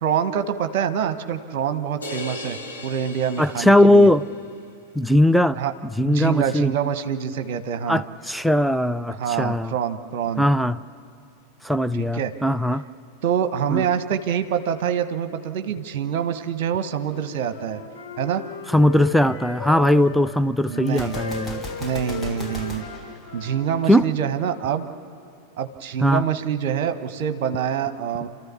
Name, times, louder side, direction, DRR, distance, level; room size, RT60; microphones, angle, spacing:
voice 1, 0.0-2.6 2.8-4.1 5.6-5.7 6.0-8.0 9.2-10.4 12.0-12.3 13.2-17.8 18.2-18.4 20.7-21.2 21.8-22.8 23.3-24.9 25.6-28.3, right 8 dB, 50° right, 10 dB, 1.1 m, -25 dB
sound 1, 2.0-4.4, left 1 dB, 80° left, 2.4 m, -37 dB
voice 2, 3.4-4.3 4.9-6.7 7.9-9.7 10.4-10.8 11.6-12.8 13.7-13.8 18.7-21.6 23.9-24.0 26.0-26.3, left 1 dB, ahead, 13 dB, 0.4 m, -19 dB
Wind instrument woodwind instrument, 17.2-20.2 20.7-24.0, left 4 dB, 55° left, 4.0 m, -36 dB
Gunshot gunfire, 20.9-24.0, left 1 dB, 15° left, 1.7 m, -37 dB
29.0 x 13.5 x 7.1 m, 2.5 s
figure-of-eight pair, 90°, 0 cm